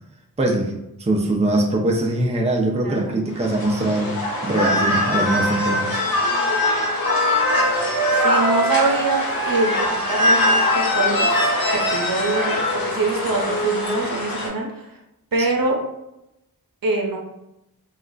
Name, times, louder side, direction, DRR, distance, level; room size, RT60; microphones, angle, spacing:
voice 1, 0.4-0.7 1.0-6.0 15.4-15.5, right 1 dB, 20° right, 0 dB, 0.5 m, -22 dB
voice 2, 2.8-3.2 8.2-9.2 9.5-11.3 11.9-14.8 15.3-15.8 16.8-17.2, right 3 dB, 65° right, 0 dB, 0.7 m, -24 dB
sound 1, 3.4-14.5, left 1 dB, 65° left, 0.9 m, -22 dB
Wind instrument woodwind instrument, 6.5-14.0, right 1 dB, 45° left, 1.2 m, -27 dB
2.4 x 2.1 x 3.7 m, 0.88 s
wide cardioid pair, 50°, 37 cm